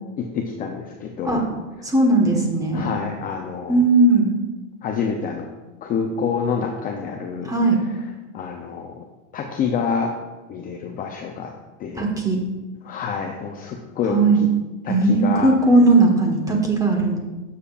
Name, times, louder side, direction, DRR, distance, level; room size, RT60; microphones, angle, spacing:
voice 1, 0.2-1.5 2.7-3.9 4.8-5.5 5.8-7.5 7.9-8.0 8.3-9.0 9.3-10.2 10.5-11.5 11.8-12.0 12.8-14.5 14.8-15.5, left 6 dB, 20° left, 2 dB, 0.5 m, -27 dB
voice 2, 1.8-2.9 3.7-4.3 7.5-7.8 11.9-12.4 14.1-14.4 14.9-17.2, right 2 dB, 10° right, 1 dB, 1.3 m, -17 dB
11.0 x 7.1 x 2.5 m, 1.1 s
supercardioid pair, 130°, 38 cm